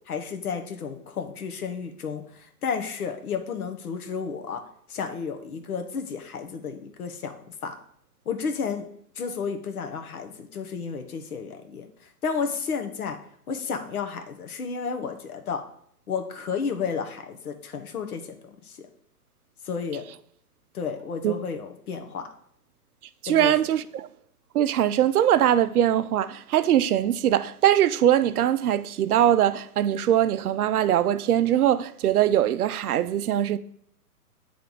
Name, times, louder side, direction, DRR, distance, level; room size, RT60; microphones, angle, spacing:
voice 1, 0.1-4.6 4.9-7.7 8.2-8.9 9.2-13.2 13.5-15.6 16.1-18.4 18.6-18.9 19.6-20.0 20.7-22.3 23.3-23.5, left 6 dB, 65° left, 1.1 m, -32 dB
voice 2, 23.2-24.1 24.5-33.6, right 11 dB, 65° right, 0.5 m, -22 dB
8.7 x 3.4 x 4.0 m
hypercardioid pair, 145°, 47 cm